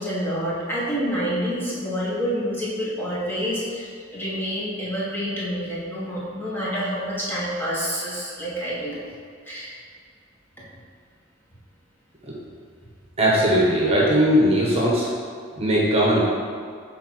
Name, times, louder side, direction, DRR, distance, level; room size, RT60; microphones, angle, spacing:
voice 1, 0.0-9.0 9.4-9.7, equal, 10° left, -8 dB, 1.5 m, -28 dB
voice 2, 13.2-15.1 15.6-16.3, equal, 30° right, -5 dB, 1.3 m, -19 dB
8.4 x 3.9 x 4.8 m, 2.2 s
head